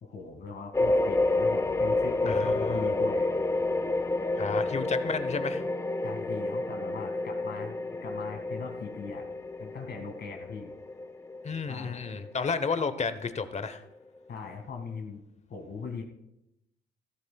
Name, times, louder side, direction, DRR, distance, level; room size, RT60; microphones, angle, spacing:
voice 1, 0.0-3.3 4.5-4.8 6.0-7.8 8.0-9.2 9.6-10.7 11.7-12.1 14.3-15.2 15.5-16.0, left 5 dB, 55° left, 3 dB, 2.0 m, -40 dB
sound 1, 0.7-13.5, left 2 dB, 15° left, 0.5 m, -29 dB
voice 2, 2.2-2.9 4.3-5.6 11.4-13.8, left 5 dB, 35° left, 11 dB, 0.9 m, -32 dB
15.5 x 13.5 x 2.3 m, 0.87 s
cardioid pair, 90°, 20 cm